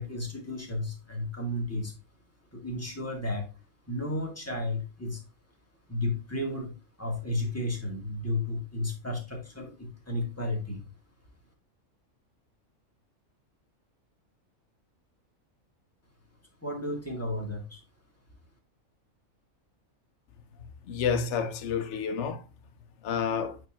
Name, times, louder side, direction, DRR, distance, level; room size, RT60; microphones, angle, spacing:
voice 1, 0.0-1.9 2.5-3.5 3.9-5.2 5.9-6.7 7.0-10.8 16.6-17.8, left 1 dB, 10° left, 1.9 m, -33 dB
voice 2, 20.8-22.5 23.0-23.6, left 6 dB, 60° left, 1.1 m, -29 dB
7.9 x 4.6 x 2.9 m
omnidirectional pair, 1.4 m